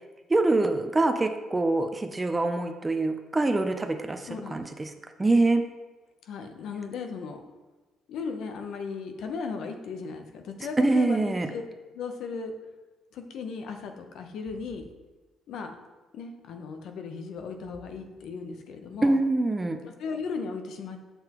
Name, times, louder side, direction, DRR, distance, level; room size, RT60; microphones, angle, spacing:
voice 1, 0.3-4.9 5.2-5.6 10.8-11.5 19.0-19.8, right 2 dB, 20° right, 6 dB, 0.5 m, -24 dB
voice 2, 4.3-4.6 6.2-7.4 8.1-11.6 11.9-12.5 13.1-14.9 15.5-15.7 16.1-19.2 19.8-21.1, left 5 dB, 70° left, 5 dB, 0.7 m, -36 dB
6.8 x 5.7 x 3.0 m, 1.2 s
cardioid pair, 100°, 0 cm